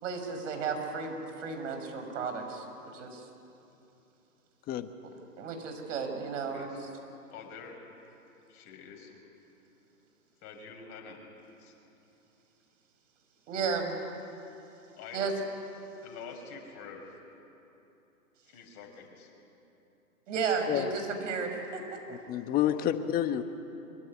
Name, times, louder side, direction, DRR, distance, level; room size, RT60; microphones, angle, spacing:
voice 1, 0.0-3.2 5.4-6.7 13.5-14.0 15.1-15.3 20.3-21.8 22.1-22.2, right 5 dB, 55° right, 5 dB, 6.0 m, -33 dB
voice 2, 6.5-6.9 7.3-7.8 8.5-9.1 10.4-11.2 11.6-11.7 15.0-15.2 16.0-17.2 18.4-19.3 22.6-22.8, left 6 dB, 35° left, 1 dB, 6.4 m, -47 dB
voice 3, 22.1-23.4, left 11 dB, 20° left, 10 dB, 1.1 m, -29 dB
25.0 x 24.0 x 9.8 m, 2.9 s
hypercardioid pair, 130°, 44 cm